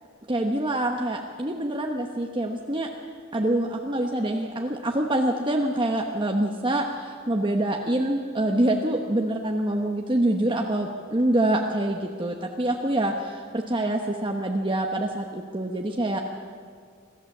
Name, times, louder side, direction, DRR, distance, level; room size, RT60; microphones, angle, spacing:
voice 1, 0.3-2.9 3.3-16.2, right 1 dB, 25° right, 1 dB, 1.1 m, -25 dB
25.5 x 14.0 x 7.4 m, 2.1 s
head